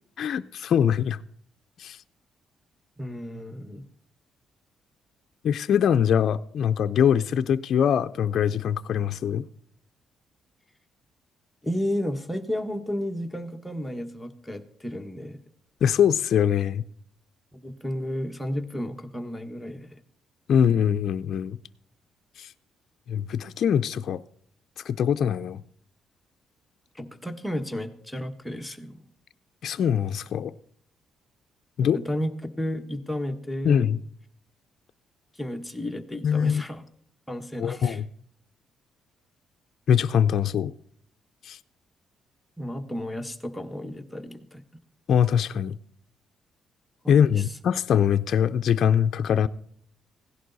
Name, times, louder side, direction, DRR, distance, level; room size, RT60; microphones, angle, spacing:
voice 1, 0.2-1.2 1.8-2.0 5.4-9.5 15.8-16.8 20.5-21.6 22.4-22.5 23.1-24.2 24.8-25.6 29.6-30.5 31.8-32.0 33.6-34.0 36.2-36.6 37.6-38.0 39.9-40.7 41.4-41.6 45.1-45.8 47.1-49.5, left 8 dB, 65° left, 0.4 m, -23 dB
voice 2, 3.0-3.8 11.6-15.4 17.5-20.0 26.9-29.1 31.8-33.9 35.3-36.8 37.3-38.0 42.6-44.6 47.0-47.4, equal, 5° left, 1.4 m, -32 dB
16.5 x 11.0 x 4.0 m
cardioid pair, 90°, 0 cm